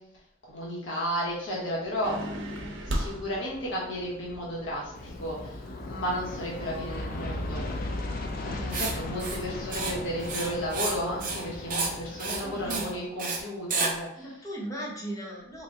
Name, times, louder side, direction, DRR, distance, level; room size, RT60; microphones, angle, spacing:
voice 1, 0.4-2.1 2.8-7.8 8.4-14.5, equal, 70° left, -5 dB, 1.0 m, -33 dB
sound 1, 2.0-6.9, equal, 75° right, 0.8 m, -38 dB
Aircraft, 4.9-13.0, left 2 dB, 45° left, 0.4 m, -36 dB
Writing, 8.7-8.9 9.2-9.4 9.7-9.9 10.2-11.0 11.2-11.4 11.7-11.9 12.2-12.4 12.7-12.9 13.2-13.4 13.7-13.9, right 4 dB, 45° right, 0.7 m, -30 dB
voice 2, 12.4-13.0 14.2-15.6, right 1 dB, 15° left, -2 dB, 0.8 m, -37 dB
4.0 x 2.2 x 3.6 m, 0.86 s
head